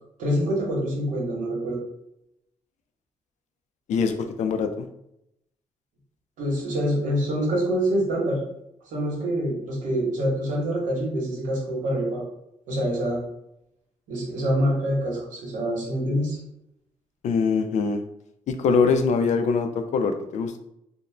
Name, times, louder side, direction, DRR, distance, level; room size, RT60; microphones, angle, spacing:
voice 1, 0.2-1.8 6.4-8.4 8.9-12.2 12.7-13.2 14.1-16.4, equal, 90° right, -2 dB, 0.9 m, -25 dB
voice 2, 3.9-4.9 17.2-18.0 18.5-20.6, left 5 dB, 70° left, 7 dB, 0.4 m, -23 dB
2.5 x 2.0 x 3.1 m, 0.80 s
cardioid pair, 70°, 13 cm